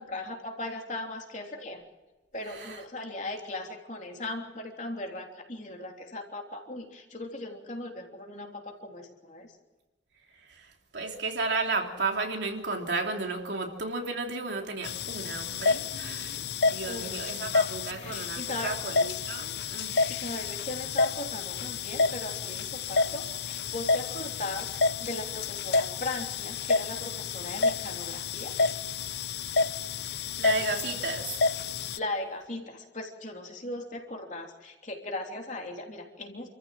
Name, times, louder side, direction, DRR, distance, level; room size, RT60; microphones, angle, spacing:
voice 1, 0.0-1.8 2.3-9.5 16.8-17.4 17.9-18.8 20.1-24.7 25.0-28.5 32.0-36.5, left 2 dB, 40° left, 3.3 m, -38 dB
voice 2, 2.5-2.8 10.5-20.1 30.0-31.3, right 3 dB, 70° right, 3.2 m, -33 dB
sound 1, 14.8-32.0, left 4 dB, 60° left, 0.6 m, -30 dB
28.0 x 14.5 x 7.6 m
head